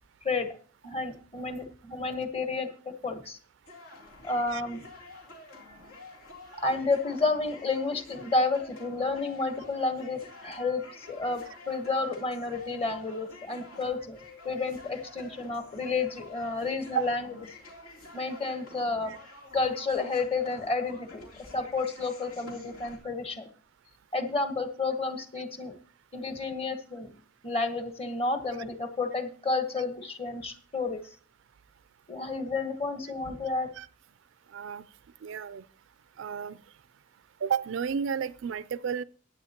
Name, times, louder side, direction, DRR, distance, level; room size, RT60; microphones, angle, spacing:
voice 1, 0.2-0.6 0.8-3.4 4.2-4.8 6.6-14.2 14.4-17.3 18.1-19.1 19.5-23.5 24.1-25.7 26.1-27.1 27.4-31.0 32.1-33.7, left 3 dB, 30° left, 1.2 m, -31 dB
sound 1, 3.7-23.0, left 2 dB, 85° left, 3.2 m, -49 dB
voice 2, 34.5-34.9 35.2-35.6 36.2-36.6 37.4-39.0, right 7 dB, 65° right, 0.4 m, -31 dB
15.5 x 9.3 x 2.9 m
head